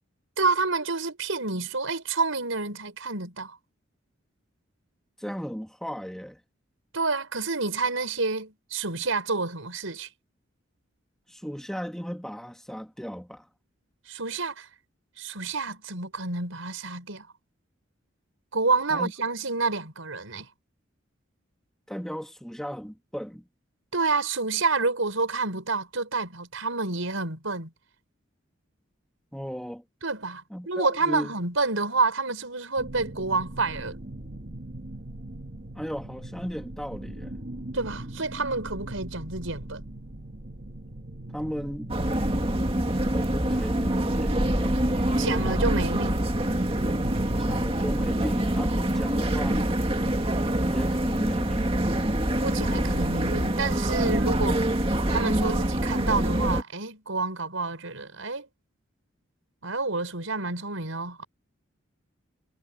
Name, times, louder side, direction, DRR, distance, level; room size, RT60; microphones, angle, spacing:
voice 1, 0.4-3.6 6.9-10.1 14.1-14.7 15.2-17.3 18.5-20.5 23.9-27.7 30.0-34.0 37.7-39.8 45.2-46.3 52.4-54.7 55.1-58.5 59.6-61.2, right 3 dB, 85° right, 5.8 m, -28 dB
voice 2, 5.2-6.4 11.3-13.5 18.9-19.1 21.9-23.4 29.3-29.8 30.5-31.3 35.8-37.3 41.3-42.0 42.9-44.9 47.4-49.7 50.7-51.7, equal, ahead, 2.5 m, -36 dB
sound 1, 32.8-48.6, right 1 dB, 45° right, 1.6 m, -40 dB
sound 2, 41.9-56.6, right 1 dB, 30° right, 2.2 m, -25 dB
head